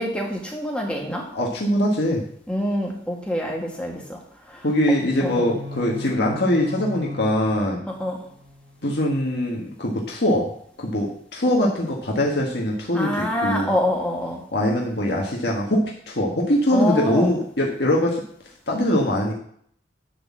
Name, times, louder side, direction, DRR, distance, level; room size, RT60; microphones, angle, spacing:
voice 1, 0.0-1.2 2.5-4.2 4.5-4.6 5.2-5.4 7.9-8.2 12.9-14.4 16.7-17.3, left 1 dB, 5° left, -1 dB, 1.7 m, -26 dB
voice 2, 1.3-2.2 4.6-7.8 8.8-10.5 10.8-13.7 14.5-18.2 18.7-19.3, left 1 dB, 60° left, -2 dB, 1.5 m, -22 dB
sound 1, 4.8-8.8, left 1 dB, 80° right, 1.9 m, -37 dB
11.0 x 4.2 x 7.4 m, 0.64 s
head